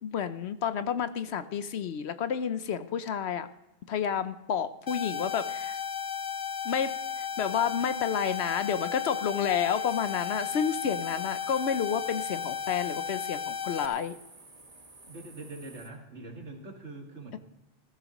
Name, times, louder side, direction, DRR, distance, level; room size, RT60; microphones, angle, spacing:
voice 1, 0.0-3.5 3.9-5.8 6.6-14.1 17.3-17.4, left 8 dB, 65° left, 12 dB, 0.9 m, -30 dB
sound 1, 4.9-13.9, left 7 dB, 35° left, 0.3 m, -34 dB
sound 2, 9.8-15.9, right 2 dB, 30° right, 1.5 m, -52 dB
voice 2, 15.1-17.4, right 2 dB, 70° right, 2 dB, 2.2 m, -43 dB
15.0 x 14.5 x 3.0 m, 0.93 s
omnidirectional pair, 1.2 m